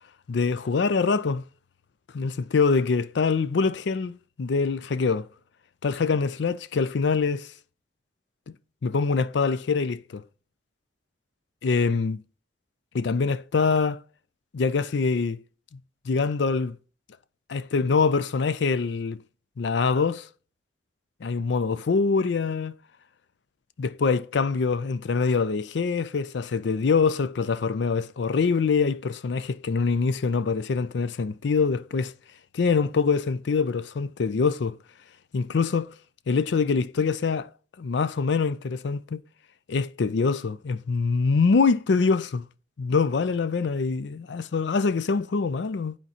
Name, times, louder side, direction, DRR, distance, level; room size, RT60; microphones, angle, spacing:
voice 1, 0.3-1.4 2.1-5.3 5.8-7.5 8.8-10.2 11.6-12.2 12.9-14.0 14.5-15.4 16.1-16.8 17.5-19.2 19.6-20.3 21.2-22.7 23.8-32.1 32.5-34.8 35.3-35.9 36.3-37.5 37.8-39.2 39.7-42.4 42.8-46.0, left 4 dB, 70° left, 0.4 m, -24 dB
10.5 x 4.4 x 2.9 m
head